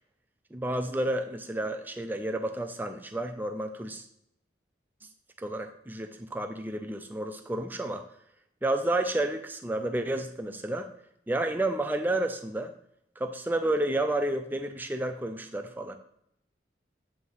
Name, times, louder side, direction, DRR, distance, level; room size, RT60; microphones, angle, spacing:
voice 1, 0.5-4.0 5.4-8.0 8.6-10.9 11.3-12.7 13.2-16.0, right 1 dB, 10° right, 6 dB, 0.3 m, -30 dB
7.8 x 2.8 x 5.5 m, 0.76 s
head